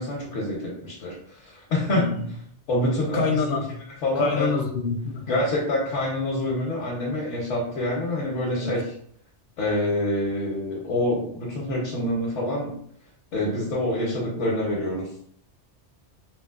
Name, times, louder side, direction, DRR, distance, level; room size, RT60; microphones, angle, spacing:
voice 1, 0.0-2.1 2.7-3.5 4.0-4.5 5.3-8.9 9.6-12.7 13.3-15.1, left 1 dB, 85° left, -4 dB, 1.1 m, -26 dB
voice 2, 1.9-2.3 3.1-3.7 4.2-5.4 8.6-8.7, left 4 dB, 65° left, 4 dB, 0.7 m, -26 dB
3.1 x 3.0 x 2.3 m, 0.62 s
omnidirectional pair, 1.2 m